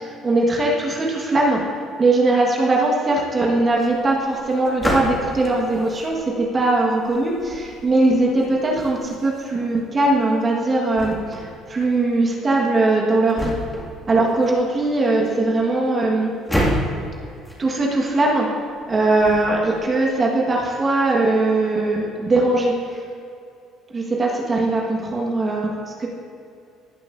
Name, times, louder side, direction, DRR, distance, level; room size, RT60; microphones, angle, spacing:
voice 1, 0.2-1.6 2.0-13.5 14.1-16.3 17.6-18.5 18.9-23.0 23.9-26.1, right 2 dB, 35° right, -2 dB, 1.6 m, -20 dB
sound 1, 3.7-19.8, equal, 10° left, 2.3 m, -32 dB
17.5 x 5.9 x 2.7 m, 2.5 s
supercardioid pair, 90°, 0 cm